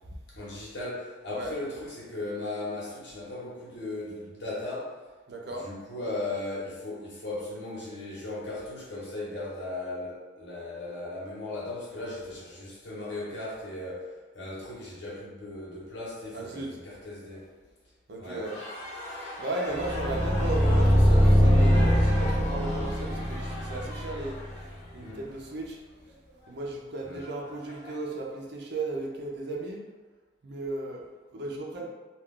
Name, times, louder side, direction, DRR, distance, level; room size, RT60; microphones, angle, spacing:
voice 1, 0.3-5.0 5.6-17.5 18.2-18.5 25.0-25.2 27.0-27.2, left 2 dB, 85° left, -6 dB, 1.1 m, -37 dB
voice 2, 5.3-5.7 16.3-16.8 18.1-18.6 19.4-25.8 26.5-29.8 30.4-31.9, right 2 dB, 65° right, -1 dB, 0.6 m, -35 dB
sound 1, 18.4-28.4, left 1 dB, 40° left, 0.8 m, -41 dB
sound 2, 19.7-24.7, equal, 20° right, 0.9 m, -22 dB
2.4 x 2.3 x 3.6 m, 1.3 s
head